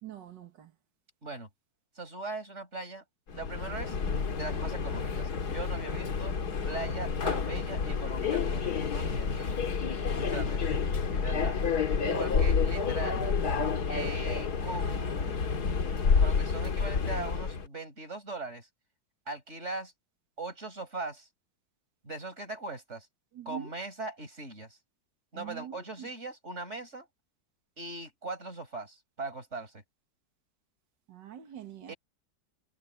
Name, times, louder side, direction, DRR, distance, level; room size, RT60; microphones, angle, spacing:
voice 1, 0.0-0.8 23.3-23.7 25.3-26.1 31.1-31.9, right 10 dB, 70° right, 2.2 m, -44 dB
voice 2, 2.0-3.0 3.3-4.0 4.3-6.4 6.6-9.6 10.2-10.8 11.2-11.6 12.1-13.3 13.9-15.5 16.2-18.7 19.3-19.9 20.4-21.3 22.0-23.1 23.5-24.8 25.3-27.1 27.8-29.8 31.9-32.0, right 3 dB, 35° right, 5.7 m, -40 dB
Subway metro underground, 3.3-17.7, left 5 dB, 60° left, 2.3 m, -29 dB
omnidirectional pair, 2.0 m